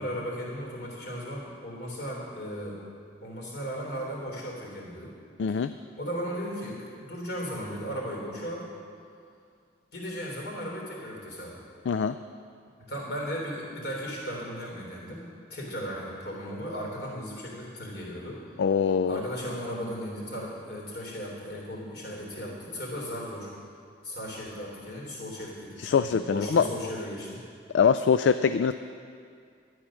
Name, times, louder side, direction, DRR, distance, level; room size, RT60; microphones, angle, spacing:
voice 1, 0.0-2.8 3.2-5.1 5.5-5.6 6.0-8.7 9.9-11.5 12.9-15.2 15.5-18.4 19.1-23.5 24.0-27.4, equal, 65° left, -2 dB, 3.5 m, -36 dB
voice 2, 5.4-5.7 11.9-12.2 18.6-19.2 25.8-26.6 27.7-28.7, left 6 dB, 80° left, 10 dB, 0.3 m, -23 dB
12.0 x 9.8 x 6.3 m, 2.3 s
head